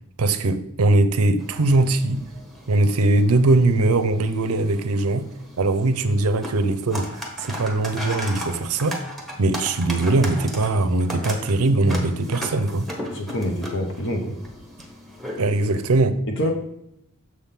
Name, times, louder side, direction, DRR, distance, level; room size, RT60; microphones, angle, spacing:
voice 1, 0.2-2.2 2.7-5.3 5.6-9.0 9.4-12.8 15.4-16.2, right 2 dB, 80° right, 0.6 m, -21 dB
sound 1, 1.4-15.9, equal, ahead, 1.0 m, -37 dB
voice 2, 13.1-14.4 16.3-16.5, equal, 60° left, 0.9 m, -26 dB
6.5 x 3.6 x 5.7 m
head